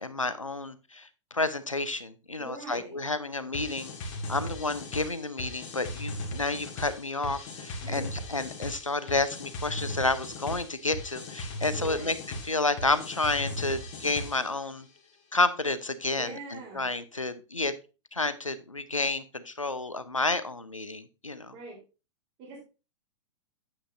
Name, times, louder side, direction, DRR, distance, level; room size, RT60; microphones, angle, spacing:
voice 1, 0.0-12.1 12.4-14.9 15.3-17.7 18.1-21.5, left 3 dB, 90° left, 13 dB, 0.8 m, -30 dB
voice 2, 2.4-3.0 7.8-8.0 11.7-12.1 16.1-16.9 21.5-21.8 22.4-22.6, right 4 dB, 35° right, -1 dB, 3.5 m, -42 dB
sound 1, 3.5-14.6, left 1 dB, 40° left, 2.0 m, -38 dB
8.6 x 8.6 x 2.6 m, 0.31 s
figure-of-eight pair, 100°, 16 cm